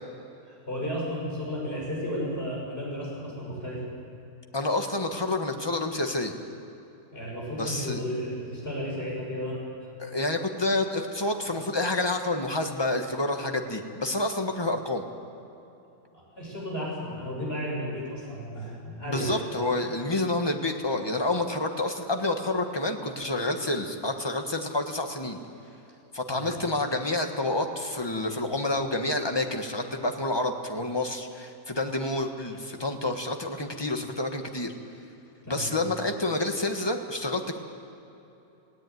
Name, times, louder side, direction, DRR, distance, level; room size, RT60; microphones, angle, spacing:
voice 1, 0.5-3.8 7.1-9.6 16.1-19.4 19.8-20.0 26.3-26.6 35.4-35.7, equal, 30° left, -4 dB, 6.6 m, -33 dB
voice 2, 4.5-6.3 7.6-8.0 10.0-15.0 19.0-25.4 26.1-34.7 35.5-37.6, left 2 dB, 15° left, 4 dB, 1.2 m, -28 dB
19.0 x 17.0 x 9.3 m, 2.9 s
omnidirectional pair, 2.0 m